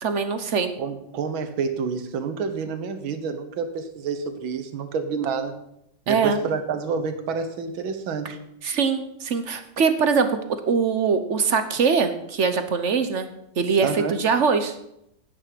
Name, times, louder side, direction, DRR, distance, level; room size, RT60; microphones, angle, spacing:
voice 1, 0.0-0.7 6.1-6.4 8.6-10.3 10.7-13.3 13.6-14.7, right 5 dB, 50° right, 9 dB, 1.0 m, -22 dB
voice 2, 0.8-5.6 6.1-8.4 13.8-14.1, right 5 dB, 90° right, 8 dB, 1.9 m, -28 dB
10.5 x 9.3 x 5.9 m, 0.79 s
omnidirectional pair, 2.1 m